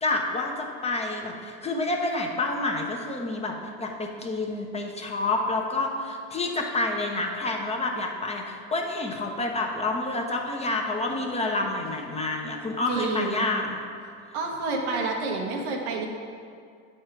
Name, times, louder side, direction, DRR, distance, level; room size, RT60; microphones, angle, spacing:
voice 1, 0.0-13.8, left 2 dB, 20° left, 1 dB, 1.0 m, -28 dB
voice 2, 12.9-13.5 14.3-16.1, right 3 dB, 85° right, 1 dB, 1.2 m, -29 dB
8.2 x 4.3 x 4.6 m, 2.2 s
supercardioid pair, 95°, 32 cm